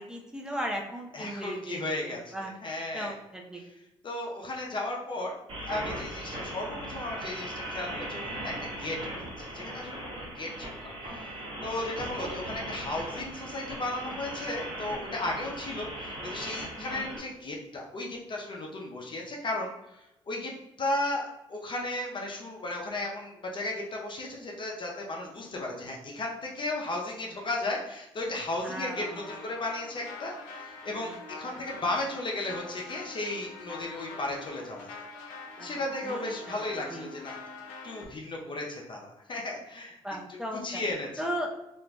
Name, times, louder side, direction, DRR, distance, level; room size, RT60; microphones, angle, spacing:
voice 1, 0.0-2.5 2.9-3.6 12.2-12.3 12.9-13.0 16.8-17.2 28.6-29.3 31.0-31.1 31.4-31.6 35.6-35.7 36.0-36.6 36.9-37.1 40.0-40.8 41.2-41.5, equal, 5° right, 0 dB, 0.6 m, -37 dB
voice 2, 1.1-3.2 3.6-3.7 4.0-5.4 5.6-11.3 11.6-37.3 37.8-40.0 40.3-40.4 40.6-41.2, left 2 dB, 40° left, -1 dB, 0.6 m, -35 dB
sound 1, 5.5-17.2, right 1 dB, 45° right, 1.0 m, -38 dB
sound 2, 28.9-38.1, left 3 dB, 80° left, 0.5 m, -45 dB
2.9 x 2.4 x 2.2 m, 0.93 s
hypercardioid pair, 55°, 13 cm